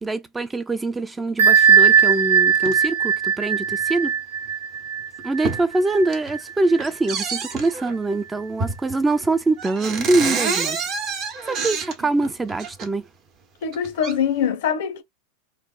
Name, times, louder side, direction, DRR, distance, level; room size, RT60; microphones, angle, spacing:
voice 1, 0.0-4.1 5.2-10.8 11.5-13.1, right 2 dB, 15° right, 0.4 m, -23 dB
Bell, 1.4-6.8, right 7 dB, 80° right, 0.4 m, -19 dB
sound 1, 2.5-2.8 3.7-3.8 4.5-4.6 5.0-5.7 6.0-6.4 6.8-8.0 8.6-9.0 9.2-9.3 9.6-12.9 13.6-14.1, right 5 dB, 40° right, 0.8 m, -28 dB
voice 2, 13.6-15.0, left 8 dB, 70° left, 0.6 m, -23 dB
3.1 x 2.1 x 2.3 m
hypercardioid pair, 105°, 0 cm